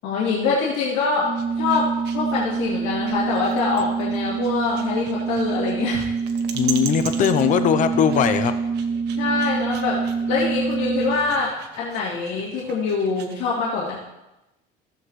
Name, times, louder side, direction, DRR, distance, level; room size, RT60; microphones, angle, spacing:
voice 1, 0.0-6.1 9.2-10.0 10.3-14.0, left 4 dB, 75° left, -7 dB, 2.4 m, -24 dB
sound 1, 0.8-13.4, right 8 dB, 65° right, 1.2 m, -40 dB
Organ, 1.2-11.5, right 5 dB, 25° right, 0.7 m, -26 dB
voice 2, 6.5-8.6, left 8 dB, 45° left, 9 dB, 0.7 m, -20 dB
15.5 x 8.1 x 3.2 m, 0.97 s
cardioid pair, 150°, 19 cm